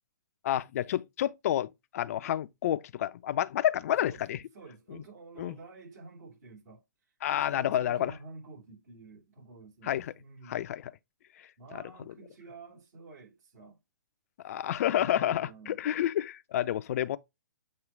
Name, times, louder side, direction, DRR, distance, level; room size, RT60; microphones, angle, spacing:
voice 1, 0.4-1.7 1.9-4.4 4.9-5.0 5.4-5.6 7.2-8.1 9.8-10.1 10.5-10.8 11.7-12.1 14.4-17.2, left 11 dB, 45° left, 0.5 m, -29 dB
voice 2, 4.5-6.8 7.3-10.7 11.6-13.8 14.9-15.8, right 3 dB, 55° right, 3.2 m, -49 dB
7.5 x 3.1 x 4.5 m
figure-of-eight pair, 130°, 11 cm